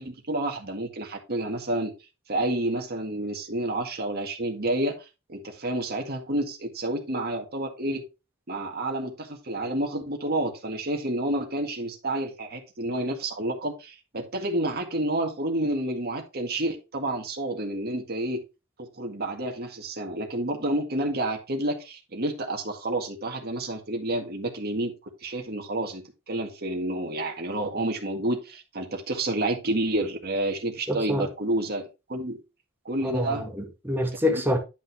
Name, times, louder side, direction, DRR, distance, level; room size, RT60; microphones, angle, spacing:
voice 1, 0.0-1.9 2.3-8.0 8.5-18.4 18.8-24.9 25.2-32.4 32.8-33.4 34.3-34.4, right 1 dB, 45° right, 1.8 m, -29 dB
voice 2, 30.9-31.3 33.0-34.6, left 1 dB, 10° right, 1.9 m, -26 dB
10.5 x 5.5 x 3.4 m
head